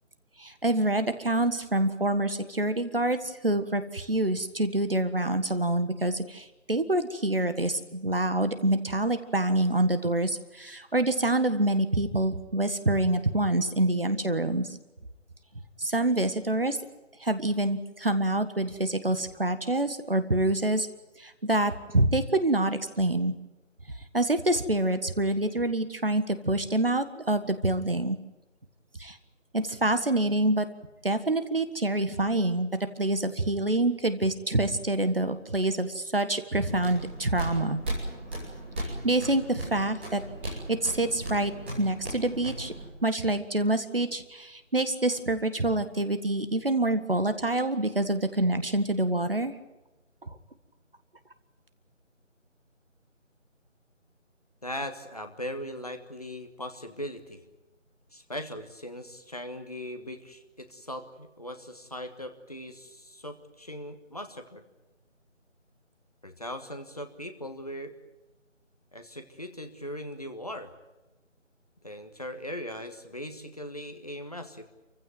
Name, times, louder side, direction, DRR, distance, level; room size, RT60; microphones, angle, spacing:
voice 1, 0.4-14.7 15.8-16.8 17.2-20.9 21.2-23.3 24.1-28.2 29.0-29.2 29.5-30.7 31.0-32.7 33.0-37.8 38.8-42.7 43.0-49.5 50.2-50.3, right 1 dB, 45° right, 10 dB, 1.6 m, -26 dB
sound 1, 36.6-42.9, right 1 dB, 10° right, 4.3 m, -37 dB
voice 2, 54.6-57.4 58.1-64.6 66.2-67.9 68.9-70.7 71.8-74.6, equal, 30° left, 7 dB, 1.5 m, -39 dB
28.0 x 15.5 x 9.2 m, 1.1 s
figure-of-eight pair, 165°, 38 cm